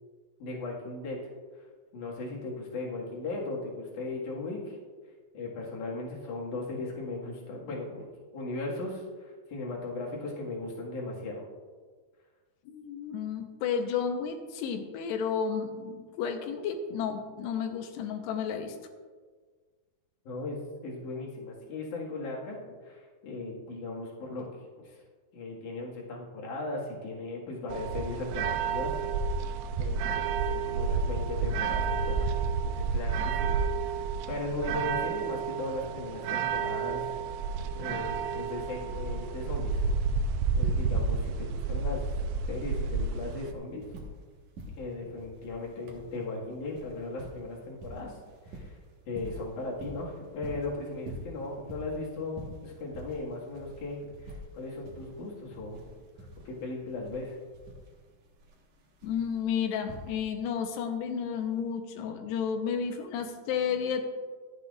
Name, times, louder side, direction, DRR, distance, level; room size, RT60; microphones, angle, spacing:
voice 1, 0.4-1.2 1.5-1.7 1.9-4.8 5.3-11.4 20.2-24.4 24.8-25.0 25.3-29.5 29.8-39.9 40.2-42.0 42.5-43.8 44.8-48.2 48.5-48.8 49.1-55.9 56.4-57.4, left 2 dB, 55° left, -3 dB, 2.9 m, -37 dB
voice 2, 12.7-18.8 59.0-64.0, left 7 dB, 80° left, 5 dB, 2.9 m, -32 dB
sound 1, 27.7-43.5, right 5 dB, 85° right, 2.6 m, -30 dB
sound 2, 42.5-42.6 42.8-44.3 44.5-60.5 61.6-61.7, equal, 60° right, 2.1 m, -47 dB
23.5 x 8.1 x 2.5 m, 1.5 s
omnidirectional pair, 4.9 m